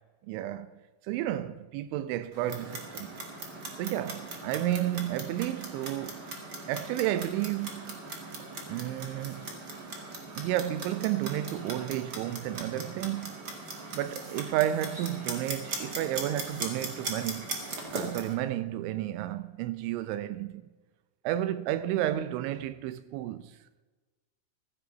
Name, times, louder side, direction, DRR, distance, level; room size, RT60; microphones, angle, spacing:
voice 1, 0.3-0.8 1.1-3.2 3.8-6.2 6.7-8.0 8.7-9.4 10.4-13.5 13.9-17.5 17.9-20.6 21.2-23.5, right 13 dB, 80° right, 2.9 m, -32 dB
Clock, 2.3-18.3, right 3 dB, 55° right, 1.1 m, -39 dB
15.0 x 14.0 x 4.0 m
omnidirectional pair, 5.5 m